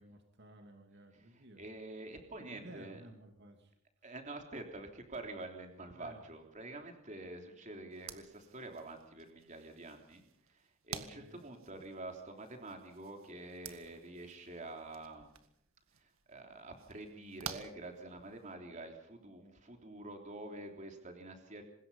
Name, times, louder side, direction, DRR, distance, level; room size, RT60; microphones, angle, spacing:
voice 1, 0.0-1.6 2.4-3.7 5.9-6.2 11.2-11.4, right 1 dB, 55° right, 4 dB, 2.7 m, -55 dB
voice 2, 1.1-3.0 4.0-10.2 10.5-15.3 16.0-21.6, right 2 dB, 35° right, 4 dB, 3.3 m, -47 dB
sound 1, 7.9-18.5, right 7 dB, 75° right, 1.9 m, -52 dB
25.5 x 21.0 x 5.6 m, 0.72 s
head